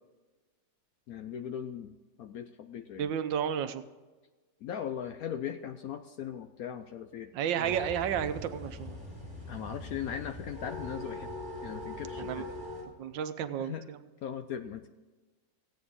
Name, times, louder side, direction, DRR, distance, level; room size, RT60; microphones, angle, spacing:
voice 1, 1.1-3.1 4.6-7.3 7.6-7.7 9.5-11.3 11.6-12.5 13.6-13.8 14.2-14.9, left 9 dB, 70° left, 8 dB, 0.9 m, -39 dB
voice 2, 3.0-3.8 7.3-9.0 12.2-12.4 13.0-14.0, right 9 dB, 80° right, 10 dB, 1.4 m, -32 dB
sound 1, 7.6-12.8, left 2 dB, 15° left, 3.6 m, -41 dB
16.0 x 8.9 x 3.6 m, 1.3 s
omnidirectional pair, 2.0 m